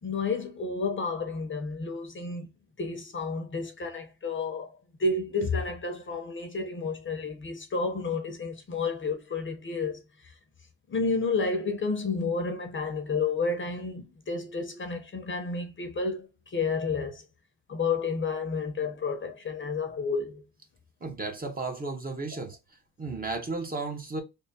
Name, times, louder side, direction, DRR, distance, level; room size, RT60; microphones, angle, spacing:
voice 1, 0.0-2.5 2.8-10.3 10.9-17.2 17.7-20.5, left 4 dB, 30° left, 0.8 m, -31 dB
voice 2, 21.0-22.6 23.0-24.2, right 3 dB, 25° right, 0.8 m, -34 dB
3.4 x 2.2 x 4.1 m
cardioid pair, 120°, 38 cm